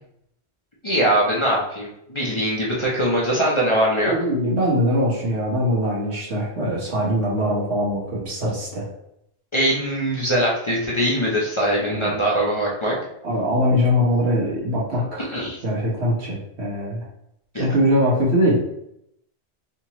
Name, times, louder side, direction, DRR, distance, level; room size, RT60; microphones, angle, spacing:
voice 1, 0.8-4.1 9.5-12.9 15.3-15.6 17.5-17.6, equal, 35° left, -5 dB, 0.6 m, -22 dB
voice 2, 4.0-8.9 11.9-12.1 13.2-17.0 17.5-18.6, equal, 75° right, -5 dB, 1.4 m, -22 dB
3.3 x 2.9 x 3.0 m, 0.77 s
omnidirectional pair, 1.1 m